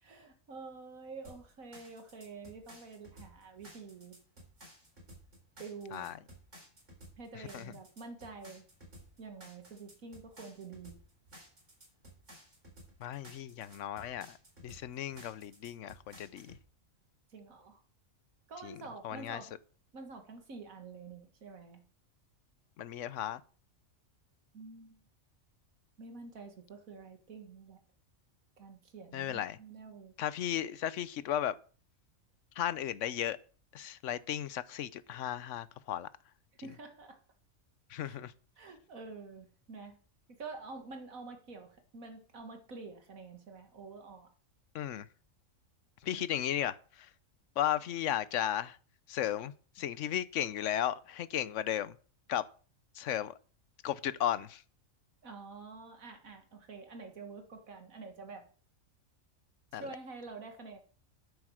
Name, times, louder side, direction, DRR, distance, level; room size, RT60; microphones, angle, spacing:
voice 1, 0.0-4.2 5.6-6.1 7.2-8.6 9.2-11.0 17.3-17.8 18.5-19.5 19.9-21.8 24.5-25.0 26.0-27.8 28.6-30.1 36.6-37.2 38.0-38.2 38.6-40.0 40.3-44.3 46.1-46.3 55.2-58.5 59.7-60.8, right 4 dB, 90° right, 2.2 m, -48 dB
sound 1, 1.2-16.6, equal, 60° right, 4.6 m, -55 dB
voice 2, 7.3-7.7 13.0-14.4 14.6-16.6 18.6-18.8 19.0-19.4 22.8-23.4 29.1-29.6 30.2-31.6 32.6-33.4 33.7-36.1 37.9-38.3 44.7-45.1 46.0-47.1 47.6-48.8 49.1-52.0 52.3-52.5 52.9-53.3 53.8-54.6 59.7-59.9, left 11 dB, 70° left, 1.0 m, -35 dB
9.7 x 8.5 x 6.4 m
omnidirectional pair, 1.4 m